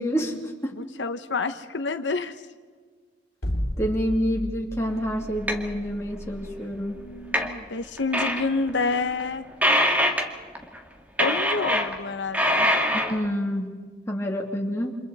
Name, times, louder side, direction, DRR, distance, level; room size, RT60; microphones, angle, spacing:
voice 1, 0.0-0.8 3.8-7.0 12.9-13.8 14.1-15.0, equal, 15° left, -1 dB, 3.0 m, -28 dB
voice 2, 0.8-2.4 7.0-9.4 11.2-12.7, left 3 dB, 85° left, 8 dB, 1.0 m, -28 dB
sound 1, 3.4-9.6, equal, 60° left, 2.8 m, -34 dB
sound 2, 5.5-5.6 7.3-7.5 8.0-8.4 8.7-8.8 9.2-9.3 9.6-10.3 10.5-10.8 11.2-12.1 12.3-13.3, equal, 10° right, 1.9 m, -23 dB
29.5 x 27.0 x 4.2 m, 1.5 s
head